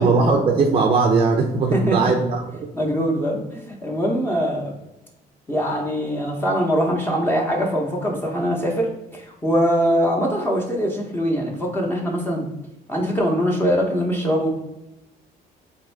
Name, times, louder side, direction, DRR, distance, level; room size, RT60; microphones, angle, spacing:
voice 1, 0.0-2.7, right 4 dB, 35° right, 2 dB, 0.5 m, -19 dB
voice 2, 1.7-2.1 2.7-4.7 5.5-12.5 12.9-14.5, equal, 10° left, -2 dB, 0.7 m, -22 dB
3.6 x 2.6 x 3.2 m, 0.94 s
cardioid pair, 110°, 17 cm